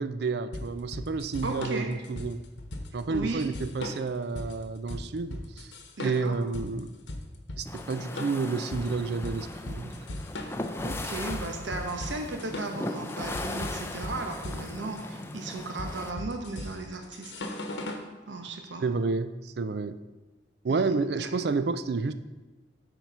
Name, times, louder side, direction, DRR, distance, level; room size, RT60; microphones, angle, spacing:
voice 1, 0.0-2.4 2.9-5.7 6.0-6.9 7.6-10.2 18.8-20.0 20.6-22.1, right 4 dB, 60° right, 12 dB, 0.4 m, -30 dB
sound 1, 0.5-18.1, left 1 dB, 80° left, 1.0 m, -38 dB
voice 2, 1.4-1.9 3.1-3.5 6.0-6.4 10.8-17.5 18.3-18.9 20.7-21.3, right 2 dB, 90° right, 4 dB, 0.9 m, -36 dB
sound 2, 7.6-16.1, left 2 dB, 15° left, 0.5 m, -38 dB
9.1 x 4.5 x 5.5 m, 1.2 s
head